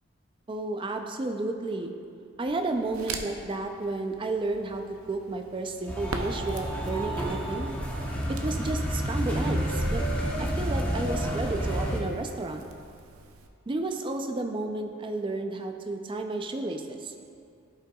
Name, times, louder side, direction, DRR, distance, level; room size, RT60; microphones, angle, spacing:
voice 1, 0.5-1.9 2.4-7.7 8.3-10.0 10.4-12.7 13.7-17.1, right 2 dB, 25° right, 5 dB, 0.4 m, -32 dB
Crackle, 2.5-13.5, right 4 dB, 85° right, 0.6 m, -44 dB
sound 1, 5.9-12.0, equal, 5° left, 0.9 m, -29 dB
14.5 x 5.6 x 2.3 m, 2.4 s
head